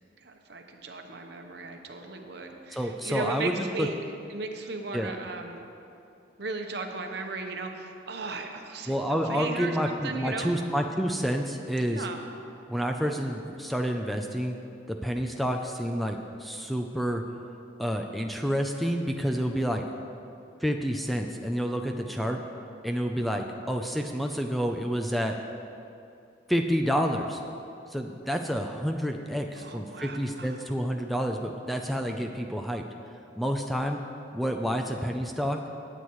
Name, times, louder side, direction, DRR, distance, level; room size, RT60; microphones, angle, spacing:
voice 1, 0.2-4.0 4.3-5.6 6.4-10.5 11.8-12.2 29.5-30.6, right 3 dB, 60° right, 4 dB, 0.9 m, -36 dB
voice 2, 2.7-3.9 4.9-5.1 8.9-12.1 12.7-14.6 14.9-17.2 17.8-19.8 20.6-22.4 22.8-25.4 26.5-27.4 27.9-32.8 33.4-34.0 34.3-35.6, equal, ahead, 3 dB, 0.4 m, -29 dB
18.0 x 8.0 x 3.1 m, 2.7 s
head